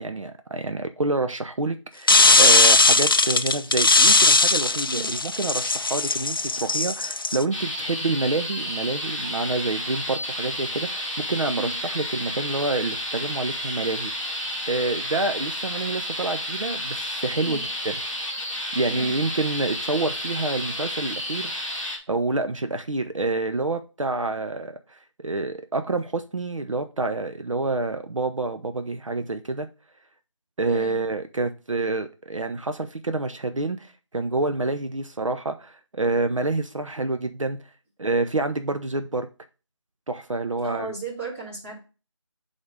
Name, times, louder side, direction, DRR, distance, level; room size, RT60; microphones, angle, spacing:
voice 1, 0.0-14.3 14.7-17.9 18.7-21.6 22.1-29.7 30.6-37.6 38.0-39.3 40.1-40.9, right 3 dB, 80° right, 0.8 m, -28 dB
sound 1, 2.1-7.4, left 3 dB, 45° left, 0.4 m, -18 dB
sound 2, 7.5-22.0, equal, 5° right, 0.8 m, -31 dB
voice 2, 30.7-31.0 40.6-41.8, right 4 dB, 25° right, 2.9 m, -35 dB
7.8 x 4.2 x 3.7 m
figure-of-eight pair, 170°, 16 cm